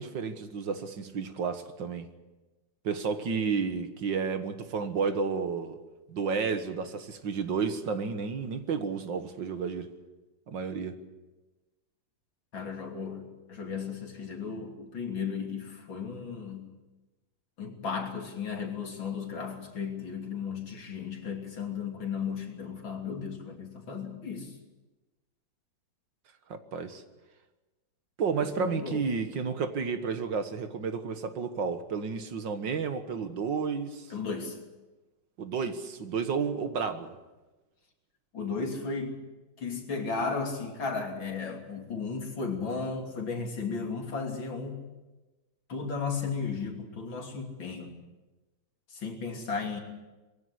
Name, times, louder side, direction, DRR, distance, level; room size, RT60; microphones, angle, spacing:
voice 1, 0.0-2.1 2.8-5.8 6.1-9.9 10.5-11.0 26.5-27.0 28.2-34.1 35.4-37.1, right 5 dB, 70° right, 9 dB, 2.2 m, -31 dB
voice 2, 12.5-16.7 17.6-24.5 28.6-29.0 34.1-34.6 38.3-39.2 39.6-44.8 45.7-48.0 48.9-49.8, left 5 dB, 85° left, 2 dB, 3.8 m, -35 dB
22.0 x 16.0 x 9.8 m, 1.1 s
omnidirectional pair, 2.1 m